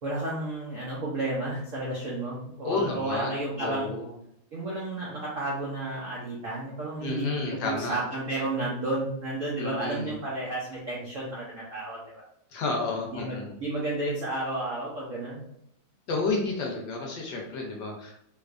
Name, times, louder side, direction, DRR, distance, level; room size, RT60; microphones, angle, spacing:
voice 1, 0.0-3.9 4.5-12.2 13.1-15.4, right 2 dB, 65° right, -6 dB, 0.7 m, -32 dB
voice 2, 2.6-4.1 7.0-7.9 9.6-10.1 12.5-13.6 16.1-18.2, left 3 dB, 70° left, 0 dB, 1.2 m, -31 dB
3.3 x 3.2 x 2.4 m, 0.77 s
omnidirectional pair, 2.2 m